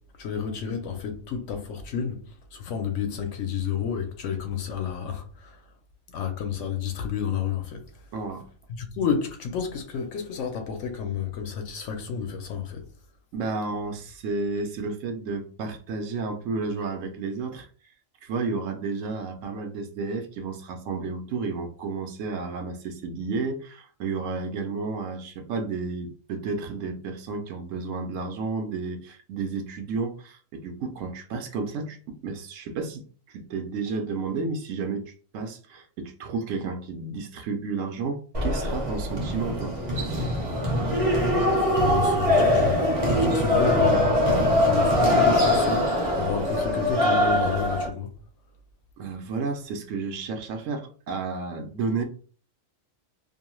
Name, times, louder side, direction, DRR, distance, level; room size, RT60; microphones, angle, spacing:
voice 1, 0.2-5.6 6.1-7.8 8.7-12.8 40.9-41.1 41.7-48.1, left 7 dB, 70° left, 0.9 m, -31 dB
voice 2, 8.1-8.5 13.3-17.7 18.2-33.0 33.3-39.7 49.0-52.0, right 4 dB, 75° right, 0.9 m, -32 dB
sound 1, 38.3-47.9, left 1 dB, 35° right, 0.6 m, -22 dB
2.6 x 2.2 x 3.0 m
omnidirectional pair, 1.4 m